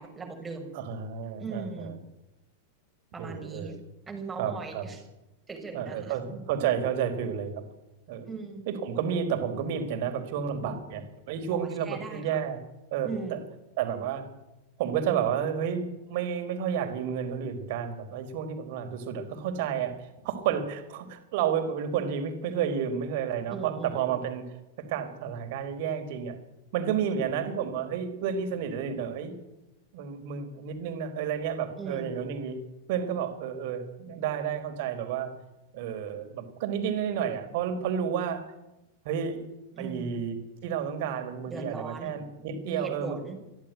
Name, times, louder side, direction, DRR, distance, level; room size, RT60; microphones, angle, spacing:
voice 1, 0.0-0.7 1.4-1.9 3.1-3.7 4.1-5.0 5.5-6.1 8.3-8.7 11.5-12.2 13.0-13.4 23.5-24.2 27.0-27.2 31.8-32.2 39.7-40.2 41.4-42.1 42.6-43.4, right 4 dB, 15° right, 3 dB, 6.4 m, -38 dB
voice 2, 0.7-1.9 3.2-3.8 4.4-4.9 5.7-7.6 8.1-8.3 8.7-12.6 12.9-13.4 13.8-14.2 14.8-19.9 20.2-24.4 24.9-26.4 26.7-29.3 29.9-32.6 32.9-35.3 35.7-38.4 39.0-39.5 39.8-43.2, right 8 dB, 50° right, 7 dB, 4.4 m, -31 dB
24.0 x 15.5 x 9.4 m, 0.96 s
figure-of-eight pair, 90°, 0 cm